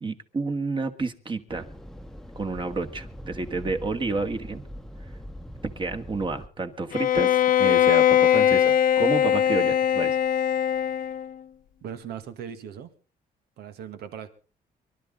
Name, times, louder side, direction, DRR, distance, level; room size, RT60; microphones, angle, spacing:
voice 1, 0.0-1.6 2.4-4.6 5.8-10.2, right 3 dB, 30° right, 7 dB, 1.8 m, -30 dB
sound 1, 1.5-6.5, equal, ahead, 1.1 m, -42 dB
Bowed string instrument, 6.9-11.3, left 10 dB, 55° left, 0.9 m, -21 dB
voice 2, 11.8-12.9 13.6-14.3, right 8 dB, 80° right, 9 dB, 2.0 m, -38 dB
24.5 x 12.5 x 3.8 m, 0.37 s
cardioid pair, 105°, 17 cm